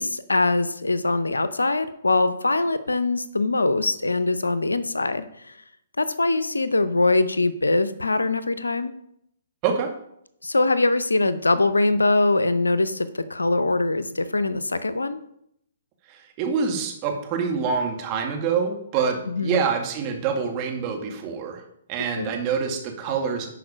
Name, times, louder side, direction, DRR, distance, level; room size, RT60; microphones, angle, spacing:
voice 1, 0.0-5.3 6.0-8.9 10.4-15.2 19.3-19.6 22.1-22.3, left 2 dB, 85° left, 14 dB, 0.6 m, -22 dB
voice 2, 16.1-21.6 21.9-23.5, right 6 dB, 35° right, 2 dB, 1.9 m, -26 dB
11.0 x 4.7 x 5.0 m, 0.75 s
figure-of-eight pair, 125°, 0 cm